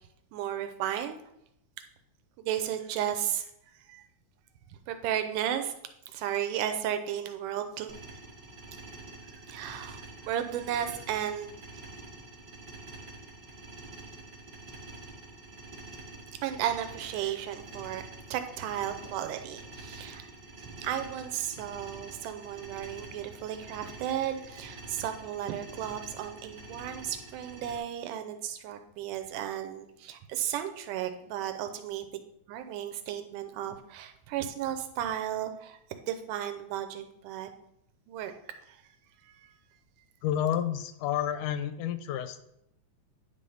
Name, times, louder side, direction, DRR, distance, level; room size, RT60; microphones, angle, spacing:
voice 1, 0.3-1.2 2.4-4.0 4.9-5.8 6.1-7.9 9.5-11.5 16.4-18.0 18.3-20.3 20.6-32.1 32.5-35.8 36.1-37.5 38.1-38.3 38.7-38.8 39.2-39.5, right 10 dB, 85° right, 8 dB, 2.2 m, -34 dB
sound 1, 7.9-27.8, right 2 dB, 55° right, 1.1 m, -47 dB
voice 2, 40.2-42.4, left 10 dB, 80° left, 11 dB, 2.0 m, -30 dB
9.8 x 3.3 x 5.4 m, 0.77 s
omnidirectional pair, 3.6 m